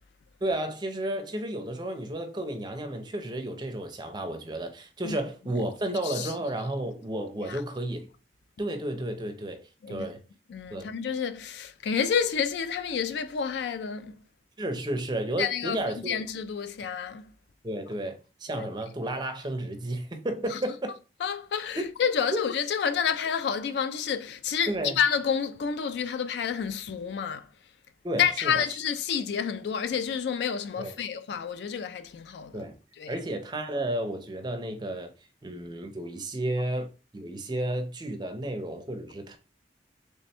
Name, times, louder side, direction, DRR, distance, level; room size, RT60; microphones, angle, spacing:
voice 1, 0.4-8.1 8.6-10.2 10.7-10.9 14.6-16.2 17.6-20.9 21.8-21.9 22.3-22.4 24.7-25.0 28.0-28.6 30.8-30.9 32.5-32.8 33.1-35.1 35.4-39.4, right 1 dB, 25° right, 0.5 m, -32 dB
voice 2, 10.5-14.2 15.4-17.3 18.5-18.7 20.5-20.6 21.2-27.5 28.2-32.7 33.0-33.2, left 7 dB, 65° left, 0.3 m, -29 dB
3.3 x 2.1 x 4.1 m
head